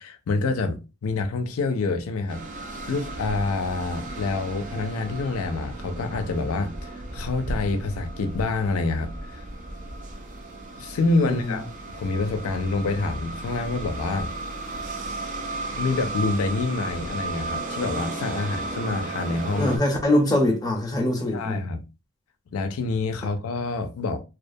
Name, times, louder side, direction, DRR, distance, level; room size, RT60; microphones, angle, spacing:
voice 1, 0.0-2.4 2.9-9.4 10.8-14.3 15.8-19.8 21.3-21.8 22.5-24.2, left 3 dB, 85° left, 0.4 m, -27 dB
sound 1, 2.3-19.8, right 2 dB, 35° right, 0.4 m, -35 dB
voice 2, 11.2-11.6 19.6-21.6, left 1 dB, 20° left, 0.6 m, -23 dB
2.3 x 2.2 x 2.6 m
head